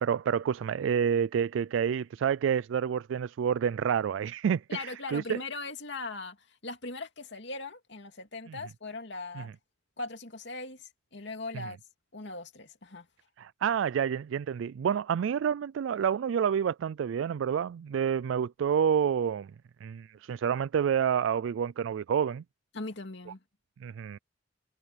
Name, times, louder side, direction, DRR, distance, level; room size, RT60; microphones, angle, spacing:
voice 1, 0.0-5.4 8.5-8.6 9.3-9.5 11.5-11.6 13.4-19.5 19.8-22.4 23.8-24.2, right 8 dB, 80° right, 0.3 m, -28 dB
voice 2, 4.7-6.4 6.6-9.5 10.0-11.8 12.1-13.1 22.7-23.4, left 3 dB, 65° left, 2.7 m, -39 dB
head